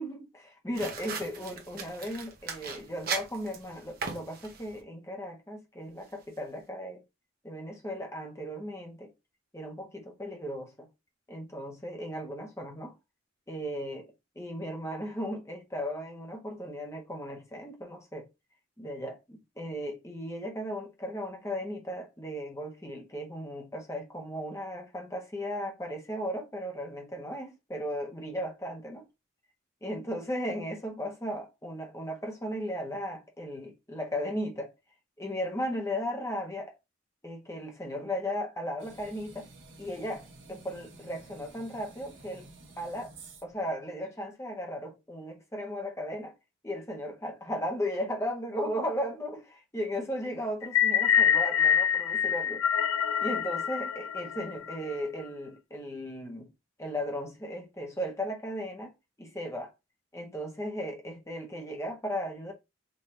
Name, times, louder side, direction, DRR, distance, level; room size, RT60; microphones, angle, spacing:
voice 1, 0.0-7.0 7.4-9.1 9.5-10.9 11.3-12.9 13.5-14.1 14.4-18.3 18.8-29.0 29.8-34.7 35.2-36.7 37.2-39.5 39.8-42.5 42.8-43.1 43.4-46.3 46.6-52.6 53.2-56.5 56.8-58.9 59.2-59.7 60.1-62.5, equal, 15° left, 1.1 m, -36 dB
sound 1, 0.7-4.8, right 5 dB, 50° right, 1.0 m, -38 dB
sound 2, 38.8-43.6, right 3 dB, 70° right, 1.3 m, -52 dB
sound 3, 50.6-54.9, left 8 dB, 85° left, 0.4 m, -26 dB
5.4 x 2.6 x 3.0 m
head